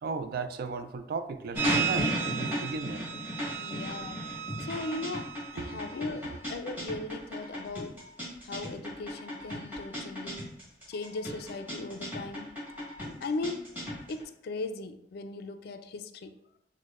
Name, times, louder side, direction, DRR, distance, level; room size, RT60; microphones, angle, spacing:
voice 1, 0.0-3.1 5.6-5.9 6.3-6.4, right 4 dB, 55° right, 9 dB, 0.3 m, -35 dB
sound 1, 1.5-14.2, right 2 dB, 10° right, 1.5 m, -34 dB
voice 2, 3.6-4.3 4.6-7.9 8.4-10.6 10.9-12.5 13.2-13.7 14.1-16.3, left 3 dB, 60° left, 9 dB, 0.3 m, -38 dB
6.2 x 2.1 x 2.4 m, 0.77 s
head